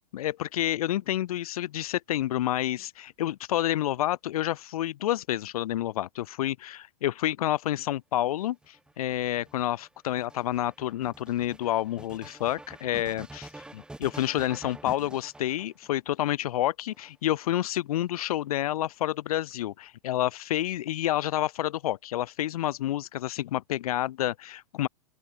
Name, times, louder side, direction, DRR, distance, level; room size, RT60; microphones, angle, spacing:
voice 1, 0.1-24.9, left 13 dB, 70° left, 1.0 m, -29 dB
sound 1, 8.2-16.1 16.9-17.8, right 2 dB, 5° right, 5.6 m, -47 dB
open air
hypercardioid pair, 135°, 19 cm